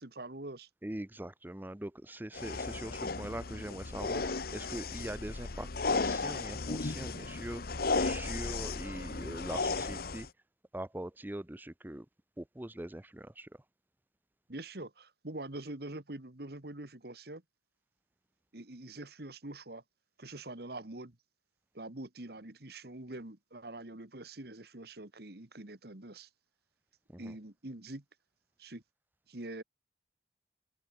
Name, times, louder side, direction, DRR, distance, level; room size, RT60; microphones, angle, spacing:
voice 1, 0.0-0.7 14.5-17.4 18.5-19.8 20.2-21.2 21.7-26.3 27.2-28.0 28.6-28.8 29.3-29.6, right 2 dB, 60° right, 1.9 m, -44 dB
voice 2, 0.8-10.3 10.7-12.1 12.4-13.6 27.1-27.3, right 1 dB, 10° right, 0.6 m, -42 dB
sound 1, 2.3-10.3, left 3 dB, 55° left, 1.0 m, -35 dB
open air
head